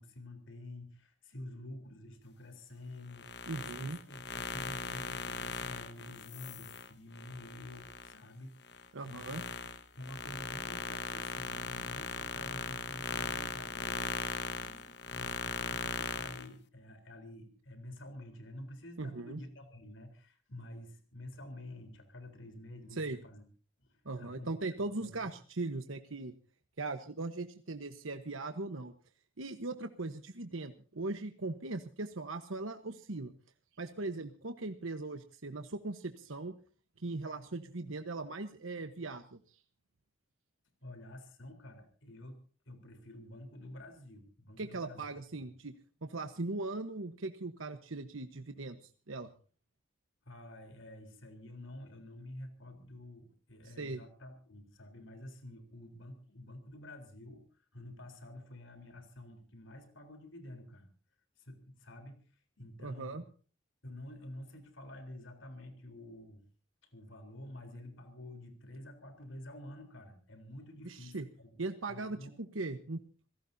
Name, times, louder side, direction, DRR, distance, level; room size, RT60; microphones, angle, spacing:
voice 1, 0.0-9.4 9.9-23.4 23.8-24.5 25.0-25.3 40.8-45.1 50.3-60.9 61.4-63.2 63.8-66.4 66.8-71.6 71.9-72.3, left 1 dB, 75° left, 6 dB, 3.9 m, -49 dB
sound 1, 3.1-8.2 8.6-16.5, left 4 dB, 55° left, 1.3 m, -39 dB
voice 2, 3.5-4.0 8.9-9.4 19.0-19.4 22.9-23.2 24.0-26.3 26.8-28.9 29.4-33.3 33.8-36.5 37.0-39.6 44.6-45.7 46.0-49.3 53.6-54.0 62.8-63.2 70.8-71.3 71.6-73.0, right 2 dB, 90° right, 7 dB, 1.2 m, -39 dB
27.0 x 17.5 x 2.8 m, 0.40 s
head